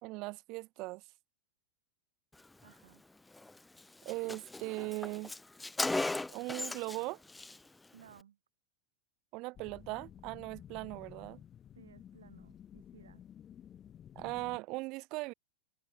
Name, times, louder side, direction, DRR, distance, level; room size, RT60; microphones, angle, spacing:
voice 1, 0.0-1.0 4.0-5.3 6.3-7.2 9.3-11.4 14.1-15.3, right 23 dB, 40° right, 1.4 m, -39 dB
voice 2, 2.6-3.0 7.9-8.4 11.7-13.2, right 9 dB, 65° right, 4.9 m, -59 dB
Car, 3.4-3.5 3.8-3.9 4.1-7.0 7.3-7.6, left 2 dB, 5° left, 0.7 m, -36 dB
sound 1, 9.5-14.6, left 9 dB, 25° left, 3.4 m, -53 dB
figure-of-eight pair, 90°, 0 cm